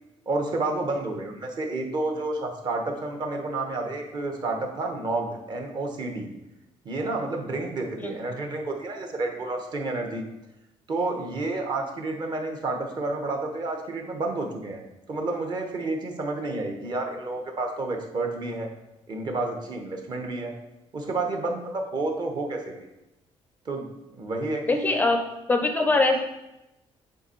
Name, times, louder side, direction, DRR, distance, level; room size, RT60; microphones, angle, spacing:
voice 1, 0.3-6.3 6.8-10.3 10.9-14.8 15.1-18.7 19.1-20.5 20.9-22.8 23.6-23.9 24.2-25.0, right 2 dB, 40° right, 3 dB, 1.0 m, -30 dB
voice 2, 24.7-25.2 25.5-26.2, left 2 dB, 15° left, 5 dB, 0.4 m, -22 dB
7.9 x 3.7 x 4.4 m, 0.94 s
cardioid pair, 165°, 11 cm